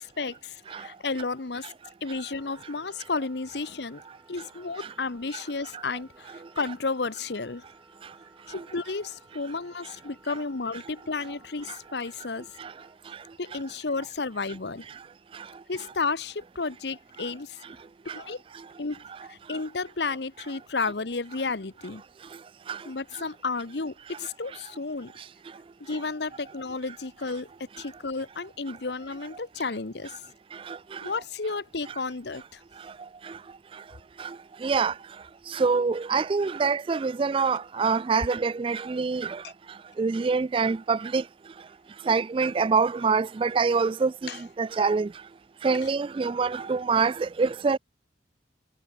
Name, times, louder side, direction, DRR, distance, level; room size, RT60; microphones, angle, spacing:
voice 1, 0.0-1.7 2.0-4.0 4.3-7.6 8.5-12.6 13.4-14.9 15.7-17.6 18.1-18.4 18.8-22.0 22.8-25.1 25.8-27.5 27.8-30.2 31.0-32.6 44.3-44.4, left 4 dB, 65° left, 1.0 m, -32 dB
Wind instrument woodwind instrument, 2.3-13.0, right 2 dB, 15° right, 7.9 m, -57 dB
voice 2, 34.6-34.9 35.5-39.4 40.0-41.2 42.1-44.1 44.6-45.1 45.6-47.8, right 4 dB, 30° right, 0.3 m, -25 dB
head